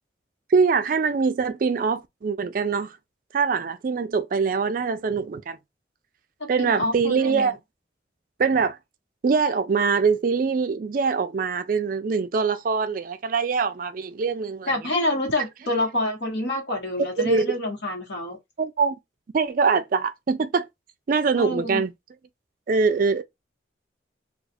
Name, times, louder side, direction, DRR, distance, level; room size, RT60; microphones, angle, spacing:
voice 1, 0.5-3.0 3.3-5.6 6.5-7.6 8.4-8.8 9.2-14.7 17.2-17.5 18.6-19.0 19.3-20.7 21.1-21.9 22.7-23.2, right 5 dB, 45° right, 0.3 m, -23 dB
voice 2, 6.4-7.5 14.7-18.4 21.3-21.8, left 1 dB, 60° left, 1.3 m, -27 dB
2.4 x 2.4 x 4.0 m
head